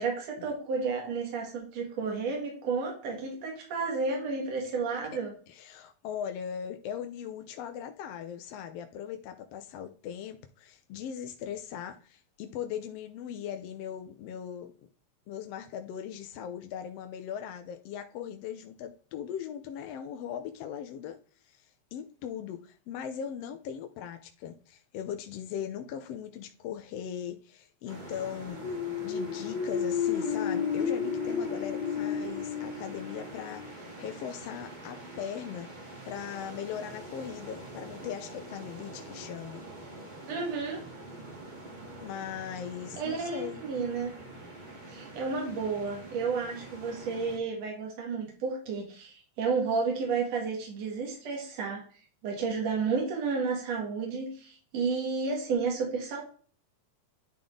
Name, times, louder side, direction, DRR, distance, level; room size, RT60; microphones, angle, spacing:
voice 1, 0.0-5.3 40.3-40.8 43.0-44.1 44.9-51.8 52.2-56.2, right 4 dB, 65° right, 3.1 m, -31 dB
voice 2, 5.5-14.7 15.3-21.2 21.4-35.7 36.1-39.6 42.0-43.6, left 9 dB, 75° left, 1.5 m, -39 dB
sound 1, 27.9-47.4, right 2 dB, 20° right, 1.3 m, -45 dB
sound 2, 28.5-34.1, left 7 dB, 40° left, 1.7 m, -32 dB
10.5 x 3.6 x 3.8 m
omnidirectional pair, 3.3 m